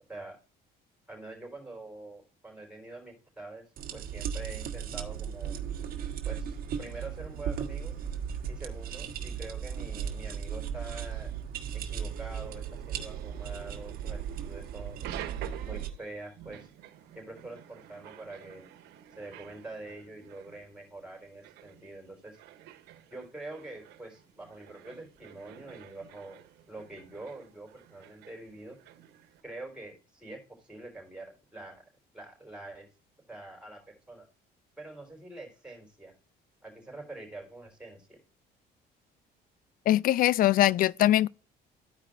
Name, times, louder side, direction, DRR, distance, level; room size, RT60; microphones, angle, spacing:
voice 1, 1.1-5.6 6.2-8.0 8.5-11.3 11.7-15.0 15.6-16.7 17.1-18.7 19.2-22.4 23.1-28.8 29.4-31.8 32.1-32.9 33.3-34.3 34.8-36.1 36.6-38.2, right 2 dB, 5° right, 3.7 m, -45 dB
sound 1, 3.8-15.9, right 8 dB, 60° right, 1.3 m, -36 dB
sound 2, 11.9-29.4, right 12 dB, 85° right, 1.0 m, -49 dB
voice 2, 39.9-41.3, left 13 dB, 60° left, 0.4 m, -22 dB
13.5 x 4.9 x 2.5 m
cardioid pair, 110°, 17 cm